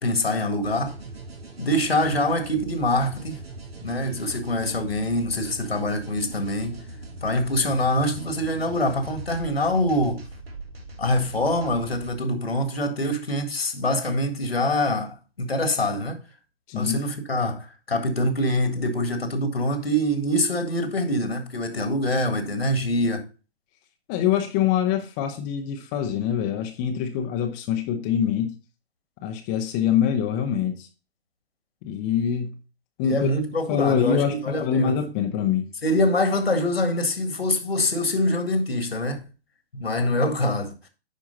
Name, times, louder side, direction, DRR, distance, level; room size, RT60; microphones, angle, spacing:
voice 1, 0.0-0.9 1.6-3.4 3.8-6.8 7.2-10.2 11.0-16.2 16.7-23.2 33.0-35.0 35.8-39.2 39.7-40.7, left 1 dB, 75° left, 1.9 m, -24 dB
sound 1, 0.6-12.2, right 2 dB, 75° right, 1.5 m, -40 dB
voice 2, 16.7-17.0 24.1-28.6 29.2-30.9 31.8-32.6 33.0-33.3 33.7-35.7, left 8 dB, 20° left, 0.7 m, -24 dB
10.5 x 4.7 x 3.8 m
figure-of-eight pair, 120°, 31 cm